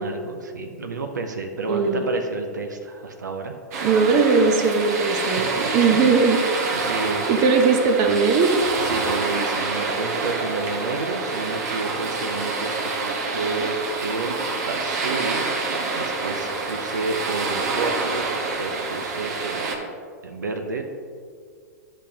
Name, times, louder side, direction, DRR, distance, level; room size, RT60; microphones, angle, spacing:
voice 1, 0.0-3.5 5.2-5.4 6.0-7.2 8.8-14.4 14.6-19.8 20.2-20.8, right 3 dB, 85° right, 5 dB, 0.6 m, -31 dB
voice 2, 1.7-2.0 3.8-5.5 5.7-6.4 7.3-8.5, right 4 dB, 40° right, 4 dB, 0.7 m, -19 dB
sound 1, 3.7-19.7, right 3 dB, 65° right, 1.1 m, -27 dB
10.0 x 5.2 x 2.8 m, 2.1 s
hypercardioid pair, 105°, 10 cm